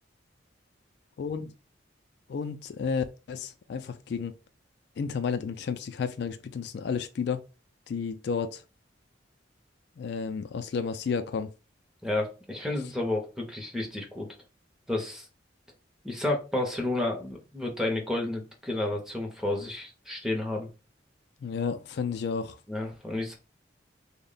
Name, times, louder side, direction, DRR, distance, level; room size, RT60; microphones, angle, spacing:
voice 1, 1.2-1.5 2.3-4.3 5.0-7.4 7.9-8.6 10.0-11.5 21.4-22.6, left 5 dB, 60° left, 0.3 m, -32 dB
voice 2, 12.0-14.3 14.9-15.3 16.0-20.7 22.7-23.3, left 2 dB, 5° right, 0.7 m, -31 dB
3.5 x 2.1 x 3.8 m
head